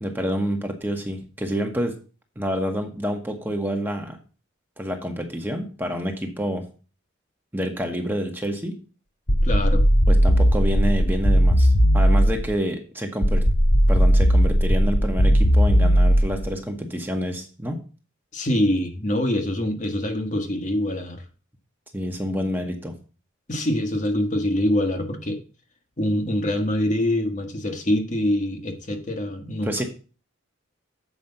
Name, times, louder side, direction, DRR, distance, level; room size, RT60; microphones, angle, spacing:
voice 1, 0.0-1.9 2.4-4.2 4.8-6.6 7.5-8.8 10.1-13.4 13.9-17.8 21.9-22.9 29.6-29.8, equal, 10° right, 3 dB, 1.1 m, -28 dB
sound 1, 9.3-12.5 13.2-16.5, equal, 60° left, 2.0 m, -17 dB
voice 2, 9.4-9.8 18.3-21.2 23.5-25.4 26.0-29.8, left 1 dB, 35° left, 5 dB, 1.2 m, -24 dB
7.3 x 5.0 x 6.6 m, 0.36 s
head